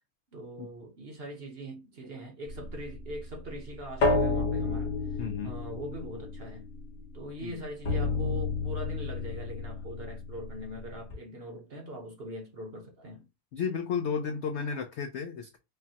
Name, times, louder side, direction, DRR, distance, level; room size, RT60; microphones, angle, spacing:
voice 1, 0.3-6.7 7.1-13.3, right 1 dB, 45° right, 0.9 m, -42 dB
sound 1, 2.5-7.3 7.8-11.1, left 3 dB, 50° left, 1.5 m, -31 dB
voice 2, 5.2-5.6 7.4-7.6 13.5-15.6, left 6 dB, 75° left, 0.6 m, -33 dB
5.3 x 2.2 x 2.8 m
omnidirectional pair, 1.7 m